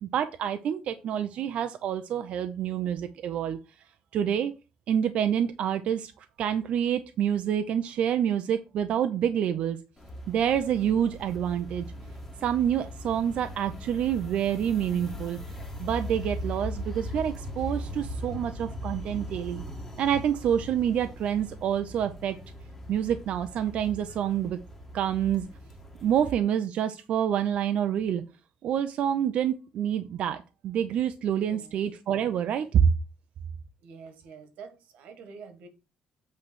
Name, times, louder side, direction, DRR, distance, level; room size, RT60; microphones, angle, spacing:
voice 1, 0.0-3.6 4.1-4.5 4.9-6.1 6.4-9.8 10.3-11.9 12.4-15.4 15.8-19.6 20.0-22.4 22.9-24.6 24.9-25.5 26.0-28.2 28.6-32.8, right 9 dB, 60° right, 9 dB, 0.5 m, -27 dB
sound 1, 10.0-26.3, equal, 10° left, 1.5 m, -39 dB
voice 2, 31.3-31.8 33.8-35.7, right 5 dB, 85° right, 8 dB, 1.7 m, -47 dB
8.3 x 3.2 x 6.2 m, 0.30 s
cardioid pair, 170°, 2 cm